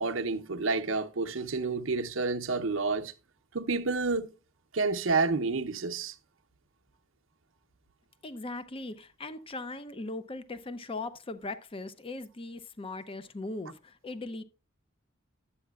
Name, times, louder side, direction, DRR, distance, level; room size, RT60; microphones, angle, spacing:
voice 1, 0.0-3.1 3.5-4.3 4.7-6.1, right 3 dB, 70° right, 0.7 m, -29 dB
voice 2, 8.2-14.4, left 2 dB, 30° left, 0.6 m, -39 dB
11.5 x 8.4 x 2.3 m
head